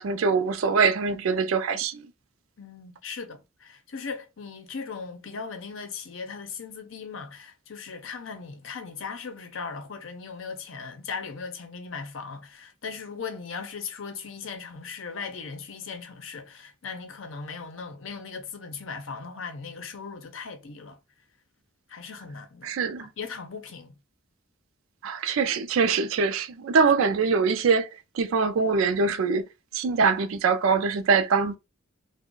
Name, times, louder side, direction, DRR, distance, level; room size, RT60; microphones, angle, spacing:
voice 1, 0.0-2.0 22.6-23.1 25.0-27.9 28.1-29.5 29.7-31.6, right 5 dB, 75° right, 0.4 m, -23 dB
voice 2, 2.6-21.0 21.9-24.0 27.0-27.1, left 5 dB, 70° left, 0.6 m, -38 dB
2.4 x 2.1 x 3.7 m
head